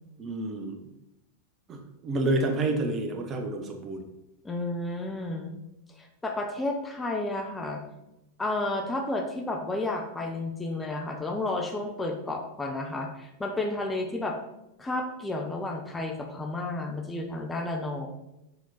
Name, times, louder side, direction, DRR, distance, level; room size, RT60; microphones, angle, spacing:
voice 1, 0.2-0.8 1.7-4.0, right 2 dB, 30° right, 5 dB, 1.1 m, -29 dB
voice 2, 4.4-5.5 6.0-7.8 8.4-14.4 14.8-18.1, left 2 dB, 10° left, 3 dB, 1.0 m, -31 dB
6.9 x 6.3 x 4.2 m, 0.89 s
figure-of-eight pair, 90°, 0 cm